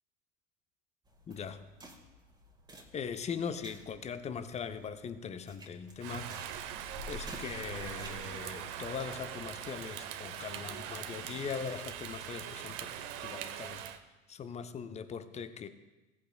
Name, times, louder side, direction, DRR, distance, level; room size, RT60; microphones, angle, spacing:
sound 1, 1.1-8.4, right 1 dB, 10° right, 1.7 m, -51 dB
voice 1, 1.3-1.7 2.9-6.3 7.1-12.9 13.2-13.8 14.3-15.7, left 6 dB, 20° left, 10 dB, 0.7 m, -40 dB
Rain, 6.0-14.0, right 9 dB, 45° right, 0.9 m, -42 dB
17.5 x 8.4 x 2.3 m, 1.1 s
figure-of-eight pair, 80°, 36 cm